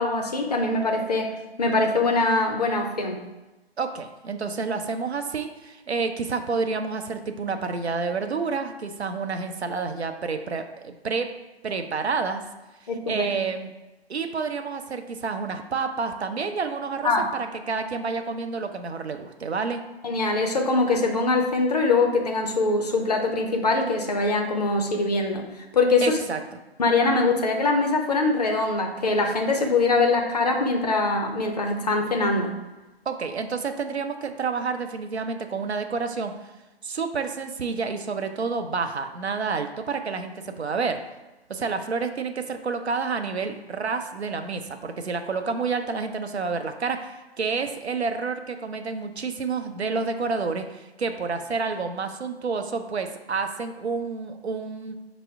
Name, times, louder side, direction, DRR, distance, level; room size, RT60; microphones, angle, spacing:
voice 1, 0.0-3.2 12.9-13.3 17.0-17.3 20.0-25.4 25.7-26.2 26.8-32.5, left 3 dB, 40° left, 3 dB, 0.5 m, -23 dB
voice 2, 3.8-11.3 11.6-12.4 12.8-13.7 14.1-19.8 26.0-26.4 33.1-36.5 36.8-41.0 41.5-55.0, right 4 dB, 85° right, 7 dB, 0.5 m, -29 dB
5.4 x 2.0 x 3.5 m, 1.1 s
figure-of-eight pair, 140°, 32 cm